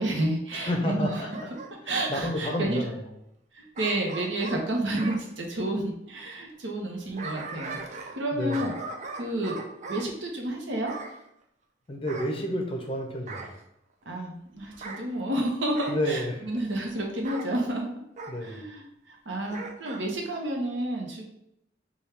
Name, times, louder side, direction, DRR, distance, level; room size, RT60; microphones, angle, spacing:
voice 1, 0.0-1.2 1.9-2.8 3.5-7.8 8.1-8.7 9.2-9.6 9.9-10.9 14.1-17.9 18.4-21.2, right 1 dB, 65° right, 1 dB, 0.8 m, -30 dB
voice 2, 0.5-1.5 1.8-3.1 8.3-8.7 11.9-13.6 15.9-16.6 18.3-18.6, left 1 dB, 30° left, 2 dB, 0.6 m, -30 dB
Bark / Growling, 1.0-2.7 3.7-5.2 6.8-8.2 8.5-10.1 10.9-11.2 12.1-12.9 13.3-13.6 14.7-15.0 15.7-16.0 17.2-17.5 18.2-18.4 19.5-20.0 20.4-20.5, right 3 dB, 40° right, 0.5 m, -39 dB
3.5 x 2.3 x 4.3 m, 0.78 s
head